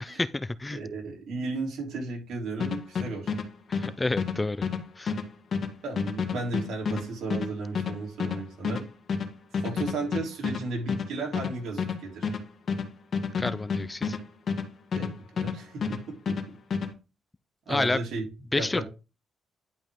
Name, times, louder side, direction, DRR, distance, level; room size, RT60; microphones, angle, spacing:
voice 1, 0.0-0.8 3.7-4.6 5.0-5.1 13.4-14.2 17.7-18.0 18.5-18.8, left 2 dB, 20° left, 0.5 m, -29 dB
voice 2, 0.7-3.3 5.8-8.9 9.6-12.3 15.0-16.4 17.7-18.2 18.5-18.8, right 3 dB, 80° right, 3.4 m, -34 dB
sound 1, 2.6-15.6 15.8-16.9, left 5 dB, 55° left, 1.6 m, -30 dB
11.0 x 5.2 x 3.7 m
cardioid pair, 95°, 0 cm